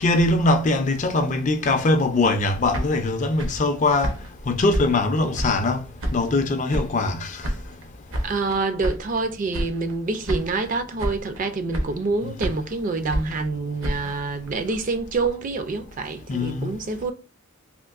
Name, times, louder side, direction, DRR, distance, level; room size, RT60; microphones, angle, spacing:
voice 1, 0.0-4.1 4.5-5.8 6.1-7.4 12.2-12.3 16.3-16.7, left 2 dB, 35° left, 0.4 m, -22 dB
sound 1, 2.5-5.7 6.0-7.1 7.4-9.2 9.5-10.0 10.3-10.7 11.0-11.4 11.7-12.8 13.1-15.3, equal, 75° right, 0.8 m, -31 dB
voice 2, 8.2-17.1, right 3 dB, 40° right, 0.4 m, -27 dB
3.6 x 2.5 x 2.4 m
head